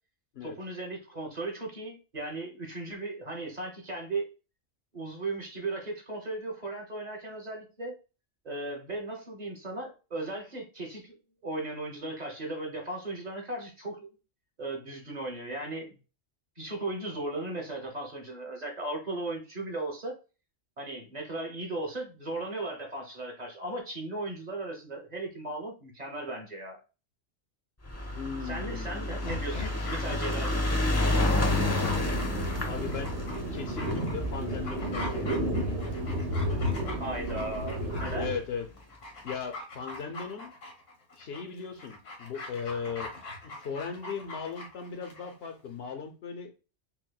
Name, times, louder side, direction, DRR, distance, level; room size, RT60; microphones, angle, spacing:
voice 1, 0.4-4.3 4.9-8.0 8.4-11.2 11.4-14.1 14.6-15.9 16.6-20.2 20.8-26.8 28.4-30.6 37.0-38.3, right 2 dB, 40° right, 1.0 m, -36 dB
sound 1, 27.8-36.3 37.2-37.3 37.5-37.6 37.8-37.9, left 2 dB, 15° left, 0.6 m, -30 dB
voice 2, 28.1-29.1 32.6-33.2 33.5-35.8 38.1-38.7 39.2-40.5 41.2-46.5, left 6 dB, 65° left, 0.8 m, -38 dB
Dog, 29.1-45.3 45.6-45.7, left 2 dB, 85° left, 1.5 m, -42 dB
sound 2, 31.3-38.4, equal, 65° right, 1.1 m, -32 dB
5.8 x 2.1 x 2.2 m
omnidirectional pair, 1.2 m